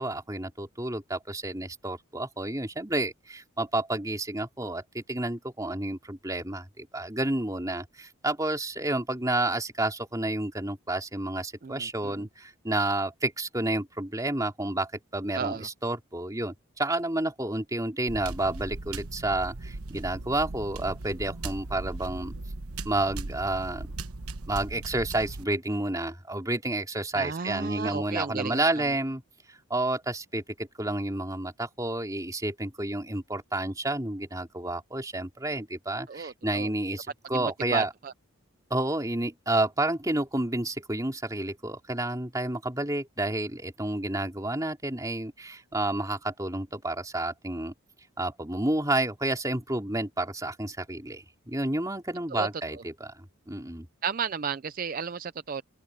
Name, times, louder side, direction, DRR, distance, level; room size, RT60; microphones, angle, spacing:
voice 1, 0.0-22.3 22.8-23.9 24.5-29.2 29.7-37.9 38.7-47.7 48.2-53.9, right 2 dB, 15° right, 3.4 m, -30 dB
voice 2, 11.6-12.3 15.3-15.7 27.1-28.8 36.1-36.7 37.3-37.4 37.7-38.1 52.3-52.5 54.0-55.6, right 6 dB, 40° right, 0.4 m, -33 dB
sound 1, 18.1-25.4, right 2 dB, 90° right, 1.1 m, -38 dB
open air
head